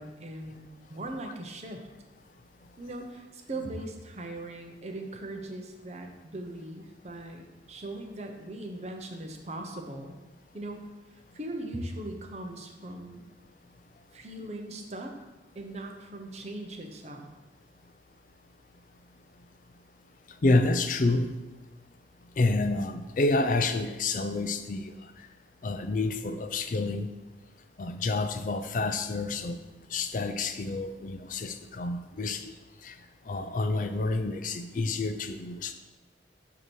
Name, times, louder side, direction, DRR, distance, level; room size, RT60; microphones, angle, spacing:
voice 1, 0.0-1.8 2.8-10.2 10.5-10.9 11.1-13.3 14.1-15.1 15.5-17.3, right 1 dB, 40° right, 3 dB, 0.8 m, -39 dB
voice 2, 20.4-21.3 22.4-24.9 25.6-27.1 27.8-29.6 29.9-32.5 32.8-32.9 33.3-35.7, left 2 dB, 45° left, 9 dB, 0.4 m, -28 dB
8.0 x 2.9 x 6.2 m, 1.1 s
head